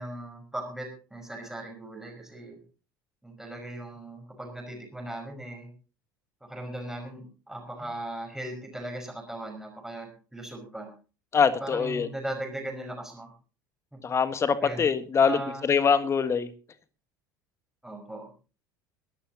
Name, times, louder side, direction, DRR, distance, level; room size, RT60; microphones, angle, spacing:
voice 1, 0.0-2.6 3.2-5.7 6.4-10.9 11.5-13.3 13.9-14.0 14.6-14.9 15.2-15.6 17.8-18.3, right 1 dB, 5° right, 3 dB, 5.5 m, -38 dB
voice 2, 11.3-12.1 14.0-16.5, left 6 dB, 25° left, 12 dB, 1.6 m, -24 dB
22.5 x 13.0 x 2.9 m, 0.35 s
figure-of-eight pair, 65°, 11 cm